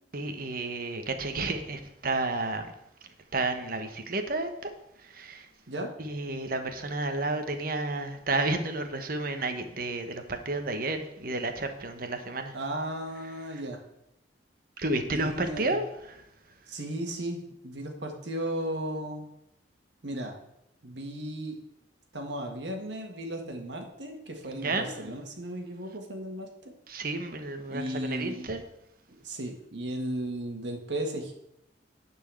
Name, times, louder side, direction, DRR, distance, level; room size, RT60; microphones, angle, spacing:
voice 1, 0.1-2.7 3.3-4.5 5.1-5.5 6.0-12.5 14.8-16.2 24.6-25.1 26.9-28.6, right 2 dB, 50° right, 7 dB, 1.2 m, -31 dB
voice 2, 12.5-13.8 15.1-15.8 16.7-19.3 20.0-20.4 20.8-21.6 22.1-26.7 27.7-28.5 29.1-31.3, right 1 dB, 80° right, 3 dB, 1.8 m, -35 dB
10.5 x 4.6 x 7.6 m, 0.83 s
head